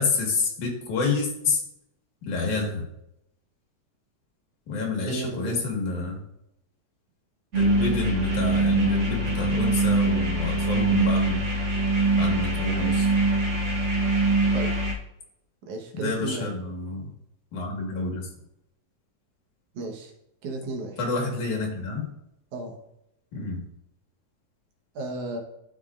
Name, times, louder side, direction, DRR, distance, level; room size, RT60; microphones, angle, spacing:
voice 1, 0.0-1.6 2.3-2.9 4.7-6.2 7.5-11.4 12.2-13.1 15.9-17.1 17.5-18.3 21.0-22.1 23.3-23.6, left 3 dB, 85° left, 0 dB, 3.2 m, -28 dB
voice 2, 5.0-5.6 14.5-14.7 15.7-16.5 19.7-20.1 20.4-21.0 22.5-22.8 25.0-25.4, right 3 dB, 80° right, 2 dB, 2.7 m, -33 dB
sound 1, 7.5-14.9, right 2 dB, 40° right, 1.0 m, -23 dB
11.5 x 5.5 x 2.5 m, 0.80 s
omnidirectional pair, 3.4 m